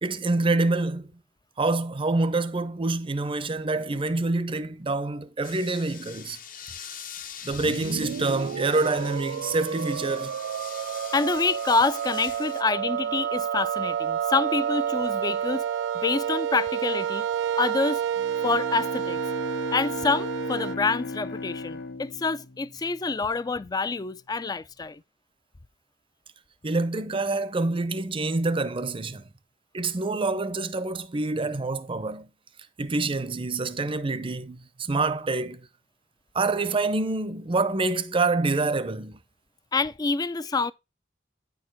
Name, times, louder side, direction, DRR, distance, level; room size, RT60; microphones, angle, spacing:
voice 1, 0.0-1.1 1.6-6.4 6.8-7.0 7.4-10.3 26.6-29.2 29.7-32.3 32.8-35.7 36.3-39.2, right 3 dB, 30° right, 0.6 m, -26 dB
sound 1, 5.4-12.6, left 8 dB, 50° left, 0.8 m, -43 dB
sound 2, 7.5-20.8, right 9 dB, 75° right, 0.3 m, -30 dB
voice 2, 11.1-15.6 15.9-17.3 17.6-18.0 18.4-19.2 19.7-25.0 39.7-40.7, left 4 dB, 20° left, 0.4 m, -27 dB
Bowed string instrument, 18.2-23.3, left 3 dB, 85° left, 0.9 m, -36 dB
9.3 x 4.7 x 4.4 m
head